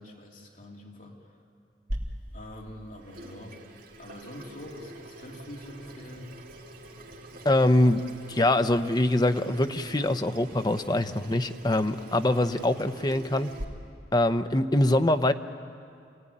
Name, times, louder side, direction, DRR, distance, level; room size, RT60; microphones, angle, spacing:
voice 1, 0.0-1.3 2.3-3.6 4.0-6.3, left 1 dB, 50° left, -1 dB, 3.3 m, -44 dB
Water tap faucet / Sink (filling or washing), 1.9-13.6, right 1 dB, 55° right, 3.1 m, -43 dB
voice 2, 7.4-8.0 8.3-13.5 14.1-15.3, left 1 dB, 25° left, 9 dB, 0.8 m, -23 dB
27.5 x 17.5 x 10.0 m, 2.3 s
head